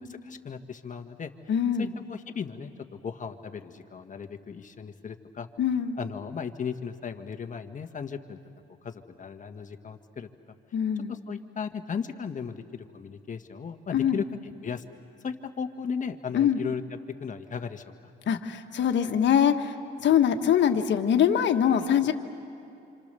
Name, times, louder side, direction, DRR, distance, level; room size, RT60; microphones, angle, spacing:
voice 1, 0.0-1.3 1.8-5.5 6.0-8.4 8.8-10.3 11.1-14.3 14.6-14.8 15.2-16.8 17.2-18.1, left 6 dB, 40° left, 7 dB, 1.5 m, -36 dB
voice 2, 1.5-1.9 5.6-6.0 10.7-11.1 13.9-14.2 16.3-16.6 18.3-19.7 20.0-22.1, left 9 dB, 65° left, 6 dB, 1.5 m, -23 dB
27.5 x 26.5 x 6.8 m, 2.8 s
cardioid pair, 90°, 20 cm